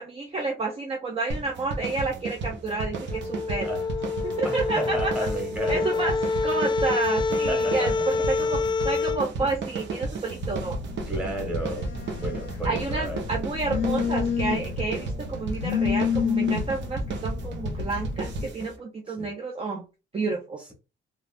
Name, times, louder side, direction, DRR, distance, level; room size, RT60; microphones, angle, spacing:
voice 1, 0.0-3.7 4.2-5.1 5.7-6.2 6.4-8.6 8.8-10.8 12.6-19.8 20.1-20.6, right 3 dB, 30° right, 0.5 m, -30 dB
sound 1, 1.3-18.8, right 3 dB, 65° right, 0.9 m, -34 dB
sound 2, 3.1-9.2, left 4 dB, 25° left, 0.4 m, -27 dB
voice 2, 4.4-6.0 7.5-8.2 9.4-9.5 11.1-13.3 19.1-19.3, right 1 dB, 5° right, 1.4 m, -33 dB
Telephone, 10.4-18.5, left 7 dB, 70° left, 0.6 m, -30 dB
3.1 x 2.5 x 2.5 m
cardioid pair, 90°, 20 cm